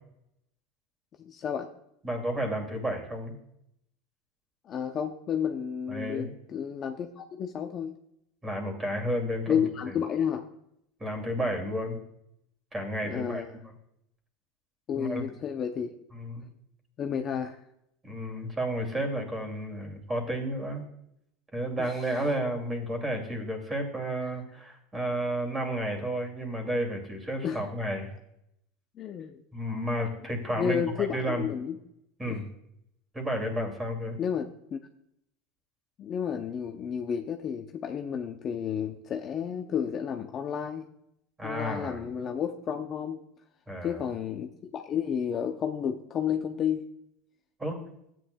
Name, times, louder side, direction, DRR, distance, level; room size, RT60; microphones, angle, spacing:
voice 1, 1.2-1.7 4.6-8.0 9.5-10.5 13.0-13.5 14.9-15.9 17.0-17.6 21.8-22.1 27.4-27.6 29.0-29.4 30.6-31.8 32.3-32.4 34.2-34.8 36.0-40.9 41.4-43.2 43.8-46.8, left 8 dB, 35° left, 5 dB, 0.6 m, -31 dB
voice 2, 2.0-3.3 5.9-6.3 8.4-9.6 9.9-10.0 11.0-12.0 12.7-13.4 14.9-15.3 16.1-16.5 18.0-20.8 21.5-28.1 29.5-31.4 32.2-32.4 33.1-34.2 41.4-42.0 43.7-44.0 47.6-47.8, equal, 15° right, 3 dB, 2.5 m, -32 dB
13.0 x 9.1 x 2.3 m, 0.77 s
supercardioid pair, 135°, 0 cm